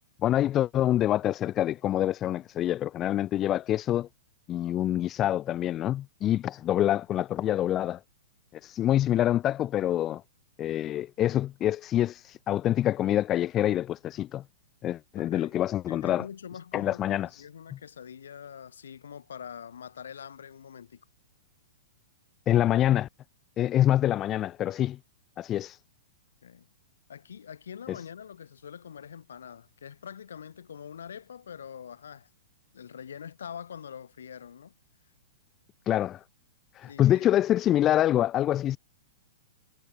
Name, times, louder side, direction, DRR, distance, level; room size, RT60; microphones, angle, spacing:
voice 1, 0.2-4.1 4.5-8.0 8.6-10.2 10.6-14.4 14.8-16.3 16.7-17.4 22.5-23.1 23.6-25.0 25.4-25.8 27.9-28.0 35.9-36.2 36.7-38.8, left 12 dB, 30° left, 0.3 m, -26 dB
voice 2, 15.2-15.6 15.9-21.0 26.4-26.7 27.1-32.3 32.7-34.7 36.8-37.3, left 8 dB, 75° left, 7.2 m, -44 dB
hypercardioid pair, 120°, 0 cm